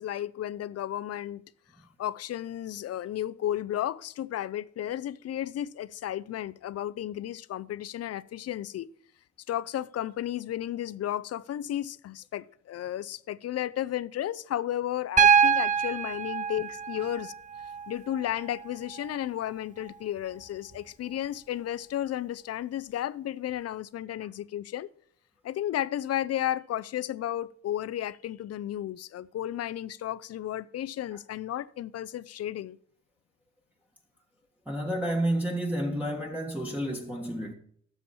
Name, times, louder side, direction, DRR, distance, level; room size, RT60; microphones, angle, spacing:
voice 1, 0.0-1.4 2.0-8.9 9.5-17.3 17.9-24.9 25.4-32.8, left 12 dB, 55° left, 0.5 m, -33 dB
Piano, 15.2-19.2 20.7-20.8, right 7 dB, 25° right, 0.6 m, -25 dB
voice 2, 34.7-37.5, right 1 dB, 5° right, 1.5 m, -30 dB
13.0 x 7.1 x 4.3 m
cardioid pair, 90°, 30 cm